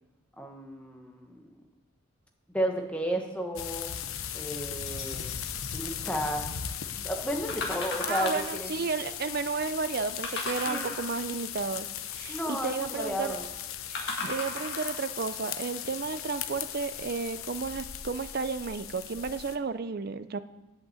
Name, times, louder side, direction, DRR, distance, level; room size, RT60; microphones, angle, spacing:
voice 1, 0.4-1.5 2.5-3.9 4.3-5.4 5.7-6.5 6.9-8.7 10.7-11.0 12.3-13.4, equal, 5° left, 2 dB, 1.2 m, -33 dB
sound 1, 3.6-19.6, left 9 dB, 80° left, 0.6 m, -38 dB
Various twangs, 4.9-5.8 7.5-8.6 10.2-11.4 13.9-15.1 15.8-15.9, left 2 dB, 55° left, 1.8 m, -36 dB
voice 2, 8.0-13.4 13.9-20.4, right 4 dB, 45° right, 12 dB, 0.5 m, -33 dB
8.3 x 8.0 x 7.8 m, 1.1 s
head